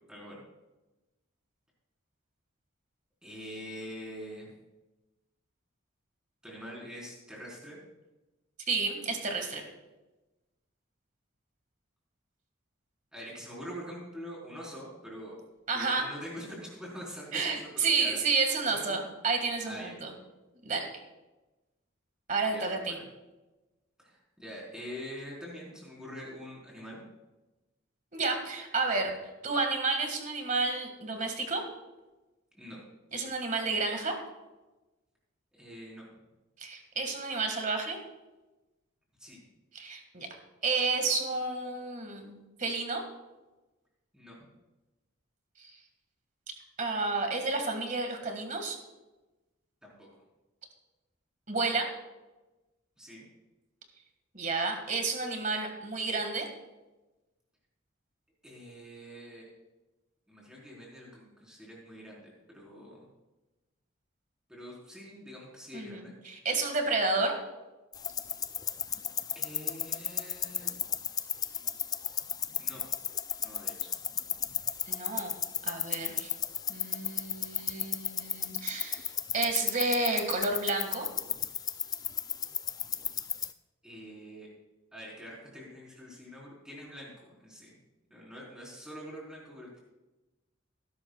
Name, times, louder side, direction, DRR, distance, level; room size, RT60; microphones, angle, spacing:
voice 1, 0.1-0.4 3.2-4.5 6.4-7.8 13.1-15.4 15.7-18.2 18.6-19.0 19.7-20.0 22.5-23.1 24.0-27.0 32.5-32.8 35.5-36.0 39.2-39.4 44.1-44.4 49.8-50.1 53.0-53.3 58.4-59.5 60.3-63.1 64.5-66.1 69.3-70.7 72.6-72.9 73.4-73.9 83.8-84.5 84.9-87.8 88.1-89.8, equal, 5° right, -4 dB, 4.2 m, -45 dB
voice 2, 8.7-9.6 15.7-16.1 17.3-20.1 20.6-20.9 22.3-23.0 28.1-29.1 29.4-31.6 33.1-34.1 36.6-38.0 39.7-40.3 40.6-43.0 45.6-45.7 46.8-48.8 51.5-51.9 54.3-56.5 65.7-67.3 74.9-76.3 76.7-81.1, right 3 dB, 40° right, 4 dB, 1.9 m, -31 dB
sound 1, 67.9-83.5, left 8 dB, 20° left, 0.4 m, -34 dB
19.0 x 11.5 x 2.4 m, 1.1 s
head